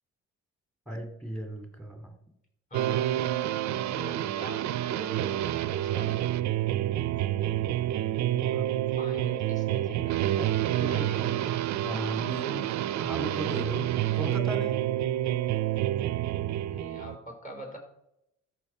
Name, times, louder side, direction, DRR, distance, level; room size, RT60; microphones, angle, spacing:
voice 1, 0.9-2.1 8.5-8.7 10.8-11.1 11.8-14.8, right 1 dB, ahead, 4 dB, 2.4 m, -37 dB
voice 2, 2.7-3.2 3.9-6.2 8.3-8.7 9.0-10.4 10.6-11.3 16.7-17.8, left 1 dB, 25° left, 0 dB, 4.0 m, -44 dB
sound 1, 2.7-17.2, right 13 dB, 65° right, 0.5 m, -28 dB
13.5 x 6.1 x 4.5 m, 0.83 s
cardioid pair, 90°, 30 cm